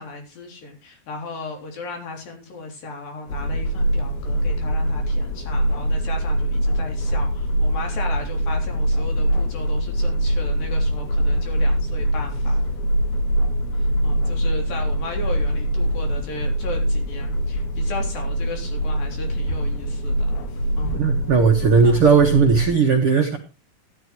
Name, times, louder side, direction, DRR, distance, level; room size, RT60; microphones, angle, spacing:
voice 1, 0.0-12.6 13.7-20.4 20.8-21.0 21.8-22.0, left 3 dB, 60° left, 2 dB, 4.9 m, -35 dB
sound 1, 3.3-22.7, right 1 dB, 80° left, 3.9 m, -23 dB
voice 2, 20.9-23.4, right 5 dB, 90° right, 3 dB, 1.2 m, -17 dB
13.0 x 12.0 x 3.1 m, 0.30 s
omnidirectional pair, 4.8 m